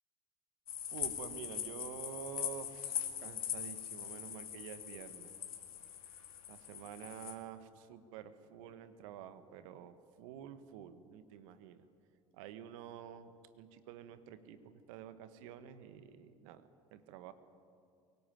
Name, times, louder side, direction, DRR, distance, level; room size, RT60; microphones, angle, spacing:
sound 1, 0.7-7.3, left 10 dB, 80° left, 2.0 m, -42 dB
voice 1, 0.9-5.3 6.5-11.8 12.3-17.3, right 9 dB, 70° right, 12 dB, 1.5 m, -49 dB
23.5 x 18.0 x 9.1 m, 2.4 s
hypercardioid pair, 65°, 18 cm